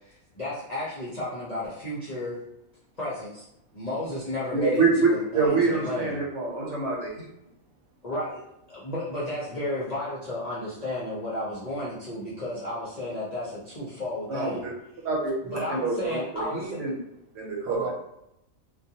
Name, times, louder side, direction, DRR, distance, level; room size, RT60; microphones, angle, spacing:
voice 1, 0.1-2.4 3.0-3.4 3.7-6.1 8.0-8.4 8.7-14.6 15.5-16.8, left 1 dB, 45° left, -9 dB, 0.5 m, -33 dB
voice 2, 4.5-7.1 14.3-14.7 15.0-16.9 17.3-17.8, right 4 dB, 60° right, -3 dB, 1.1 m, -26 dB
voice 3, 7.7-8.0 8.7-8.9 17.3-17.9, right 4 dB, 85° right, 1 dB, 1.0 m, -37 dB
2.4 x 2.2 x 2.7 m, 0.82 s
omnidirectional pair, 1.4 m